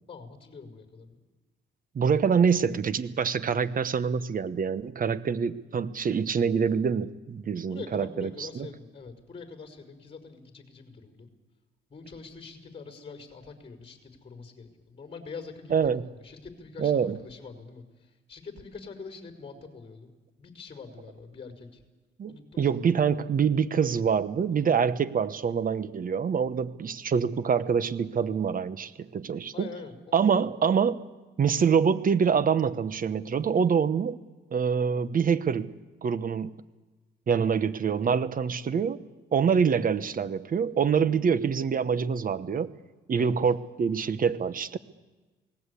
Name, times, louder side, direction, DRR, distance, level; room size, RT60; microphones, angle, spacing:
voice 1, 0.1-1.2 7.7-11.3 11.9-15.8 16.2-20.1 20.4-21.8 22.3-22.8 29.5-30.5 43.2-43.4, left 4 dB, 30° left, 5 dB, 5.5 m, -44 dB
voice 2, 1.9-8.5 15.7-16.1 16.8-17.2 22.2-29.7 30.1-31.0 31.4-34.2 34.5-35.7 36.0-36.5 37.3-39.0 39.3-42.7 43.1-44.8, right 6 dB, 45° right, 14 dB, 1.1 m, -25 dB
28.0 x 19.0 x 8.4 m, 1.3 s
cardioid pair, 90°, 20 cm